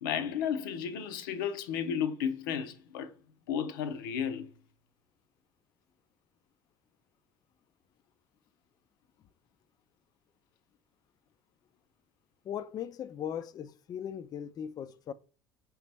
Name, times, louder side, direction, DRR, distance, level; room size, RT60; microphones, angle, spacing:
voice 1, 0.0-3.1 3.5-4.5, left 8 dB, 75° left, 0.6 m, -33 dB
voice 2, 12.4-15.1, left 9 dB, 35° left, 0.3 m, -38 dB
5.0 x 3.0 x 3.3 m
hypercardioid pair, 65°, 11 cm